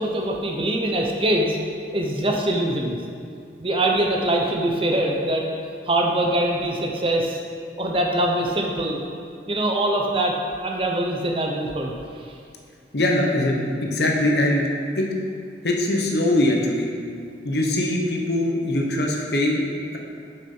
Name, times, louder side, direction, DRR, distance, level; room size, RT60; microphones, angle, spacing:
voice 1, 0.0-1.6 1.9-3.0 3.6-5.5 5.8-7.4 7.8-9.0 9.5-11.9, right 1 dB, 30° right, 1 dB, 0.8 m, -23 dB
voice 2, 12.9-14.7 14.9-15.1 15.6-16.9 17.4-19.7, left 1 dB, 60° left, 0 dB, 1.1 m, -22 dB
7.4 x 6.2 x 5.5 m, 2.3 s
head